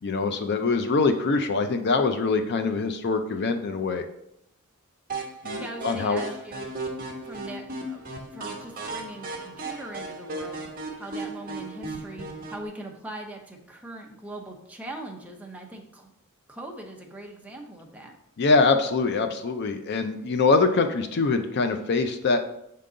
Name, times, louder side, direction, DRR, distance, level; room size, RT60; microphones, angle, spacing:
voice 1, 0.0-4.0 5.4-6.2 18.4-22.5, left 4 dB, 50° left, 7 dB, 0.4 m, -24 dB
sound 1, 5.1-12.7, right 2 dB, 40° right, 1.0 m, -36 dB
voice 2, 5.6-6.7 7.2-8.0 8.3-10.7 11.0-16.1 16.5-18.1, right 1 dB, 5° right, 0 dB, 0.7 m, -41 dB
6.6 x 3.7 x 3.8 m, 0.79 s
head